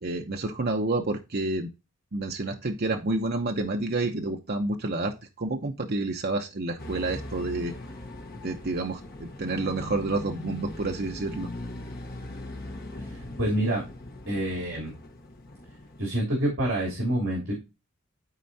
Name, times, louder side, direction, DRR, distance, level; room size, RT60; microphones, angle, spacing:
voice 1, 0.0-1.7 2.1-7.7 8.4-11.5, right 2 dB, 45° right, 3 dB, 0.8 m, -29 dB
sound 1, 6.8-16.1, left 1 dB, 45° left, 1.1 m, -40 dB
voice 2, 13.0-13.8 14.3-14.9 16.0-17.5, right 1 dB, 65° right, -2 dB, 3.3 m, -27 dB
13.0 x 4.4 x 2.8 m, 0.27 s
head